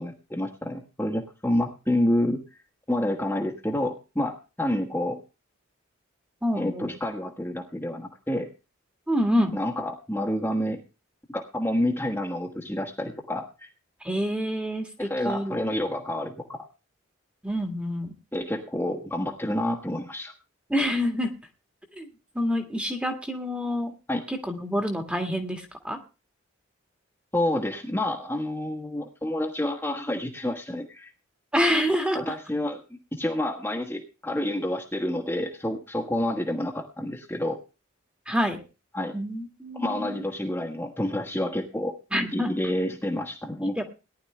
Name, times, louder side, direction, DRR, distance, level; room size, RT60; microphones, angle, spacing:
voice 1, 0.0-2.4 2.9-5.2 6.5-8.5 9.5-10.8 11.3-13.7 15.0-16.7 18.3-20.3 24.1-24.2 27.3-31.1 32.1-32.8 33.1-37.6 38.9-39.1 39.7-43.8, left 1 dB, 10° left, 0 dB, 1.4 m, -28 dB
voice 2, 6.4-6.9 9.1-9.6 14.0-15.6 17.4-18.1 20.7-21.3 22.0-22.1 22.4-23.9 24.3-26.0 31.5-32.3 38.3-38.6 39.1-40.2 42.1-42.5 43.8-43.9, equal, 5° right, 5 dB, 1.8 m, -27 dB
18.5 x 11.0 x 3.3 m, 0.31 s
head